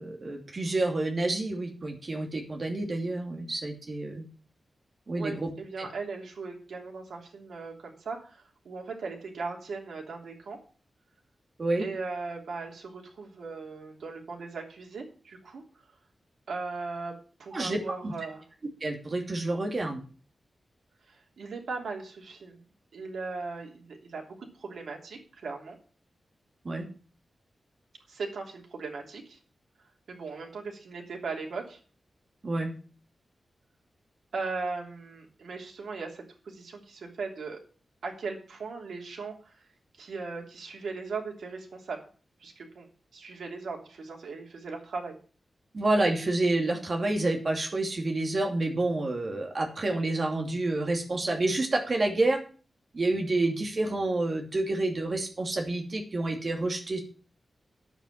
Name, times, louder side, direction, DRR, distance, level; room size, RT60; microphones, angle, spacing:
voice 1, 0.0-4.2 5.1-5.5 5.8-5.9 11.6-11.9 17.5-18.1 18.8-20.0 26.6-26.8 32.4-32.7 45.7-52.4 52.9-57.0, right 2 dB, 40° right, 3 dB, 2.7 m, -28 dB
voice 2, 5.1-10.6 11.8-15.6 16.5-17.1 17.4-18.4 21.1-22.6 22.9-25.8 28.1-29.4 30.1-31.8 34.3-37.6 38.0-39.7 40.0-42.0 42.4-45.2, right 4 dB, 85° right, 1 dB, 2.9 m, -38 dB
10.0 x 8.1 x 7.3 m, 0.39 s
wide cardioid pair, 140°, 0 cm